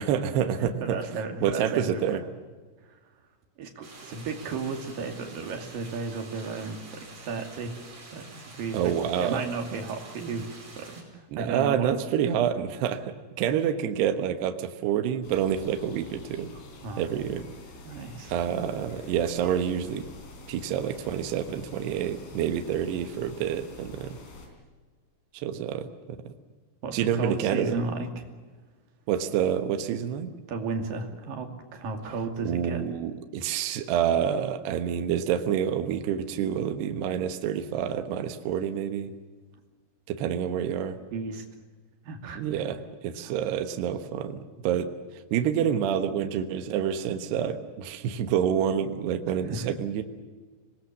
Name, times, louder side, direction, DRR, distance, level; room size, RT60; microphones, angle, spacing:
voice 1, 0.0-1.0 1.4-2.2 8.7-9.4 11.3-16.5 17.0-17.4 18.3-20.1 20.5-24.2 25.3-25.9 26.9-27.8 29.1-30.3 32.4-39.1 40.1-41.0 42.4-44.9 45.3-50.0, right 9 dB, 70° right, 8 dB, 2.9 m, -28 dB
voice 2, 0.6-2.3 3.6-7.7 8.1-9.0 9.2-10.5 10.8-12.0 16.8-17.1 17.8-18.3 26.8-28.3 30.5-32.8 41.1-41.5 42.1-42.7 43.2-43.3 49.5-49.7, right 4 dB, 50° right, 4 dB, 3.7 m, -34 dB
sound 1, 3.8-11.0, right 3 dB, 35° right, 5.9 m, -47 dB
sound 2, 15.2-24.5, left 3 dB, 75° left, 6.7 m, -47 dB
26.0 x 20.5 x 7.4 m, 1.4 s
omnidirectional pair, 6.0 m